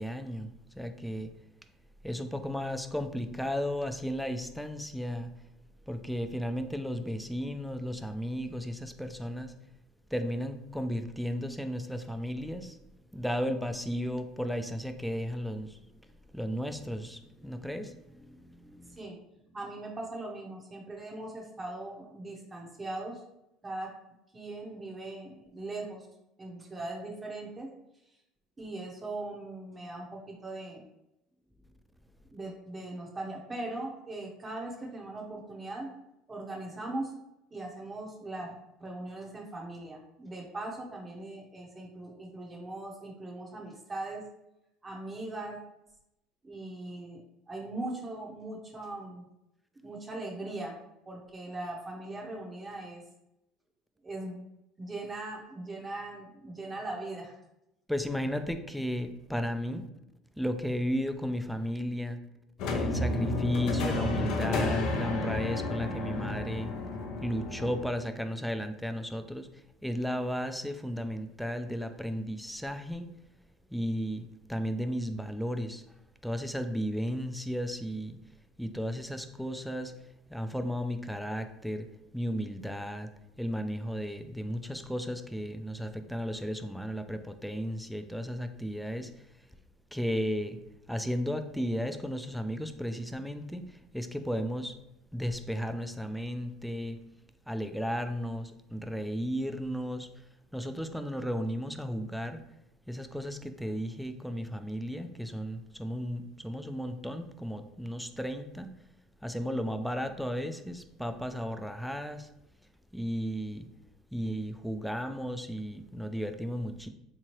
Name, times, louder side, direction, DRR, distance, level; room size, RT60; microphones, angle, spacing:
voice 1, 0.0-1.3 2.0-5.3 5.9-9.6 10.1-12.8 13.1-15.8 16.3-19.0 57.9-59.9 60.4-62.2 62.7-66.7 67.2-73.1 73.7-75.8 76.2-78.2 78.6-79.9 80.3-81.9 82.1-83.1 83.4-89.3 89.9-90.6 90.9-94.7 95.1-97.0 97.5-100.2 100.5-102.4 102.9-108.8 109.2-112.3 112.9-113.7 114.1-116.9, equal, ahead, 7 dB, 0.3 m, -34 dB
voice 2, 19.5-23.2 23.6-23.9 24.3-26.1 26.4-27.7 28.6-30.8 32.3-35.9 36.3-37.1 37.5-38.5 38.8-44.2 44.8-45.6 46.4-49.3 49.8-50.8 51.1-53.0 54.0-54.4 54.8-57.4, right 2 dB, 20° right, -1 dB, 0.7 m, -40 dB
sound 1, 62.6-67.8, left 2 dB, 65° left, 0.6 m, -31 dB
3.6 x 2.9 x 3.0 m, 0.87 s
supercardioid pair, 115°, 0 cm